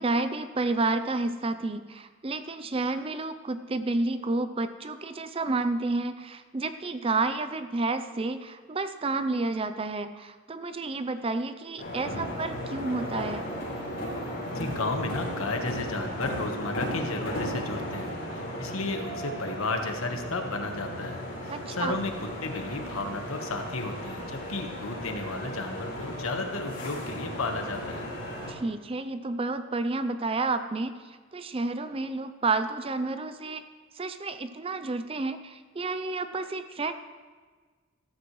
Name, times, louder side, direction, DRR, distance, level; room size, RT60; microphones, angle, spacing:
voice 1, 0.0-13.4 21.5-22.0 28.5-33.6 34.0-36.9, right 3 dB, 25° right, 10 dB, 0.5 m, -30 dB
sound 1, 11.8-28.5, equal, 55° left, 4.4 m, -35 dB
voice 2, 14.5-28.0, left 2 dB, 85° left, 5 dB, 1.3 m, -33 dB
14.0 x 13.5 x 3.2 m, 1.5 s
head